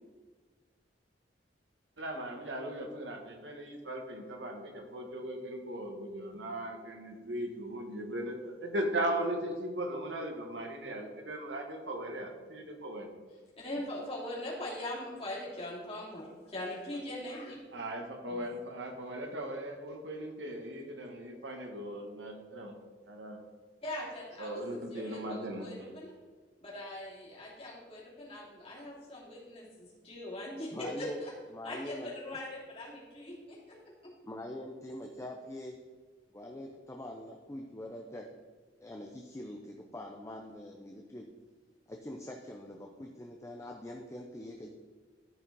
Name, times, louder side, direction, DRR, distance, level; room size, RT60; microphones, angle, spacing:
voice 1, 2.0-13.1 17.7-22.8 23.1-23.4 24.4-25.9, right 1 dB, 85° right, 3 dB, 1.4 m, -38 dB
voice 2, 13.6-17.7 18.3-18.4 23.8-26.1 26.6-31.3 31.6-34.1, left 1 dB, 35° left, -5 dB, 2.9 m, -41 dB
voice 3, 30.7-31.2 31.5-32.1 34.2-35.8 36.3-38.3 38.8-41.3 41.9-44.7, left 1 dB, 15° left, 1 dB, 0.6 m, -43 dB
13.5 x 5.0 x 4.0 m, 1.4 s
head